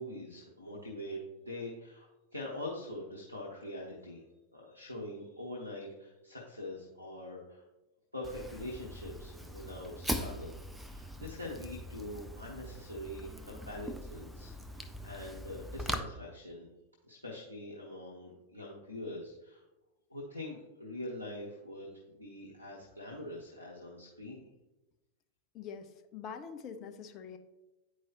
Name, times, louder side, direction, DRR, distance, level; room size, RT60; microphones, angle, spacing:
voice 1, 0.0-4.2 4.5-7.7 8.1-10.5 10.8-16.7 17.0-19.6 20.1-24.5, left 1 dB, 85° left, -4 dB, 0.9 m, -44 dB
Fire, 8.2-16.0, equal, 5° right, 0.5 m, -41 dB
voice 2, 25.5-27.4, left 6 dB, 35° left, 7 dB, 0.7 m, -44 dB
9.5 x 4.7 x 2.9 m, 1.0 s
figure-of-eight pair, 90°, 0 cm